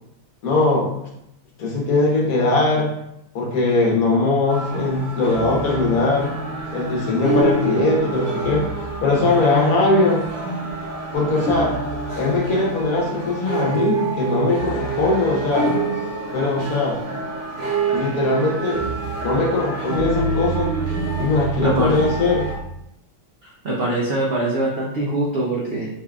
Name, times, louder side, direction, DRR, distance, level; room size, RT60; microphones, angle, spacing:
voice 1, 0.4-1.1 1.6-2.9 3.3-6.3 6.7-8.7 9.0-10.3 11.1-11.8 12.2-15.7 16.3-17.0 17.9-18.8 19.2-20.7 21.2-22.5, left 3 dB, 60° left, -2 dB, 1.2 m, -20 dB
sound 1, 4.5-22.6, right 3 dB, 50° right, 1.1 m, -26 dB
voice 2, 21.6-22.0 23.6-25.9, right 1 dB, 70° right, -4 dB, 0.5 m, -22 dB
3.9 x 3.4 x 2.3 m, 0.79 s
omnidirectional pair, 1.9 m